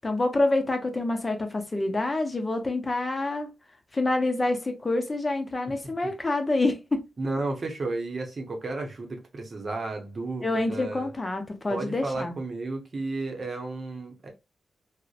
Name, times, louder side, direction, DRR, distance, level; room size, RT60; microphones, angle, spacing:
voice 1, 0.0-3.5 3.9-7.0 10.4-12.3, left 2 dB, 30° left, 0.6 m, -27 dB
voice 2, 7.2-11.1 11.7-14.3, right 2 dB, 50° right, 0.8 m, -33 dB
2.5 x 2.1 x 2.4 m
cardioid pair, 65°, 0 cm